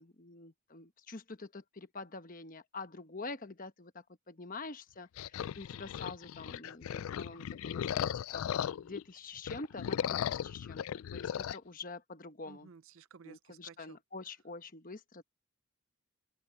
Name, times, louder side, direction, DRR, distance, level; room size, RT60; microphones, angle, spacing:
voice 1, 0.0-10.8 11.1-12.7 13.2-15.2, left 3 dB, 40° left, 1.1 m, -46 dB
sound 1, 5.2-9.0 9.4-11.6, left 9 dB, 70° left, 0.3 m, -37 dB
voice 2, 12.5-14.0, right 5 dB, 65° right, 0.6 m, -55 dB
open air
head